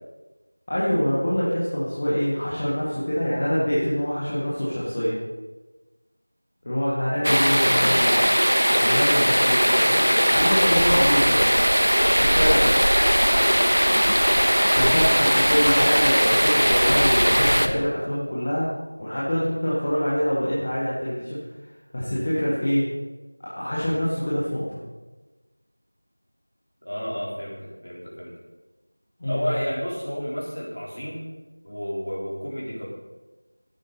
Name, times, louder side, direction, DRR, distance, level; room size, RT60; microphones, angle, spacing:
voice 1, 0.7-5.2 6.6-8.1 8.7-11.4 12.0-12.8 14.7-18.7 19.0-21.4 21.9-22.8 23.5-24.8 29.2-29.5, equal, 10° left, -8 dB, 0.8 m, -25 dB
sound 1, 7.2-17.7, equal, 75° right, 1.2 m, -19 dB
voice 2, 14.8-15.5 26.8-28.3 29.3-31.2 31.6-32.9, equal, 40° left, -6 dB, 3.9 m, -31 dB
14.5 x 11.0 x 4.1 m, 1.2 s
figure-of-eight pair, 180°, 0 cm